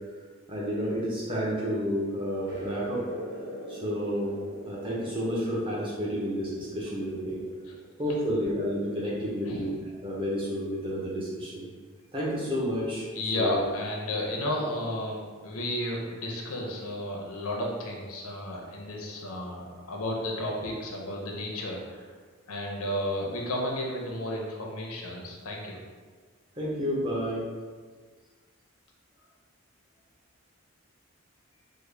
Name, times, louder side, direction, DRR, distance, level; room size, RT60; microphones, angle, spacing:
voice 1, 0.5-3.0 3.7-4.3 4.7-7.4 8.0-9.8 10.0-11.7 12.1-13.1 13.3-13.6 26.6-27.4, equal, 25° right, -6 dB, 0.6 m, -30 dB
sound 1, 2.5-8.6, equal, 65° right, 0.8 m, -42 dB
voice 2, 9.4-9.8 13.1-15.2 15.4-22.1 22.5-25.8, left 1 dB, 80° left, -1 dB, 0.6 m, -32 dB
3.5 x 2.1 x 3.3 m, 1.5 s
head